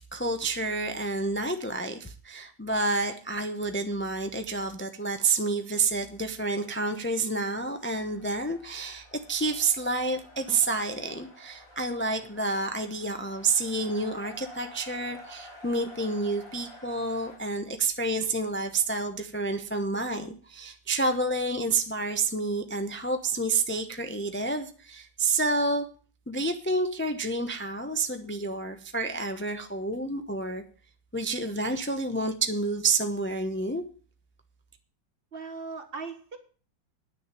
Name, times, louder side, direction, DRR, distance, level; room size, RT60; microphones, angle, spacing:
voice 1, 0.0-25.8 26.3-30.6 31.1-33.8, right 3 dB, 15° left, 6 dB, 0.4 m, -29 dB
sound 1, 5.9-17.4, left 1 dB, 45° left, 3.9 m, -51 dB
voice 2, 35.3-36.4, right 4 dB, 30° right, 4 dB, 1.7 m, -38 dB
10.0 x 6.6 x 9.1 m, 0.40 s
omnidirectional pair, 2.0 m